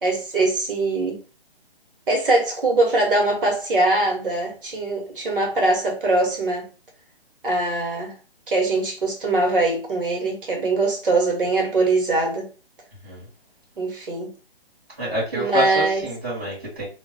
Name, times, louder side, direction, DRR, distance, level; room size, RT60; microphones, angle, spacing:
voice 1, 0.0-1.2 2.1-6.7 7.4-8.1 8.5-12.5 13.8-14.3 15.3-16.1, right 2 dB, 60° right, 1.0 m, -22 dB
voice 2, 15.0-16.8, equal, 15° right, 1.1 m, -27 dB
2.3 x 2.0 x 3.8 m
hypercardioid pair, 180°, 31 cm